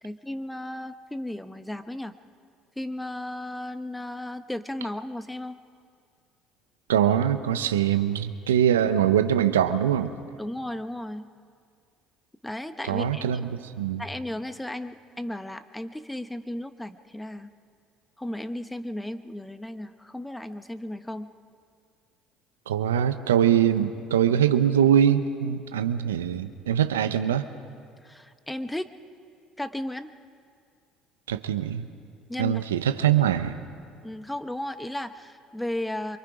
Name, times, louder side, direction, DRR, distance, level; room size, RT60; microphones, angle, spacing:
voice 1, 0.0-2.1 2.8-5.6 10.4-11.3 12.4-13.4 14.0-17.5 18.2-21.3 28.0-28.9 29.6-30.1 32.3-32.6 34.0-36.2, left 1 dB, 10° left, 10 dB, 1.0 m, -34 dB
voice 2, 6.9-10.1 12.9-13.5 13.8-14.0 22.7-27.5 31.3-31.9 32.4-33.6, right 9 dB, 90° right, 11 dB, 0.7 m, -23 dB
25.5 x 24.0 x 5.0 m, 2.2 s
hypercardioid pair, 65°, 0 cm